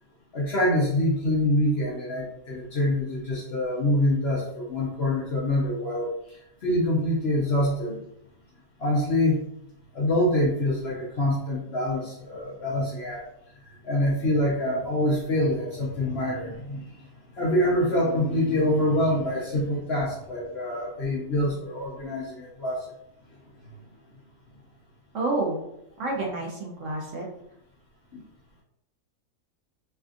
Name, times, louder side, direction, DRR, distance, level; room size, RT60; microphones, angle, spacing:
voice 1, 0.3-8.0 8.8-9.4 9.9-13.2 13.8-17.1 17.4-22.9 28.1-28.2, left 1 dB, 55° left, -5 dB, 0.7 m, -25 dB
voice 2, 25.1-25.6 26.0-27.2, right 2 dB, 65° right, -2 dB, 0.9 m, -29 dB
3.3 x 2.3 x 2.5 m, 0.78 s
omnidirectional pair, 1.6 m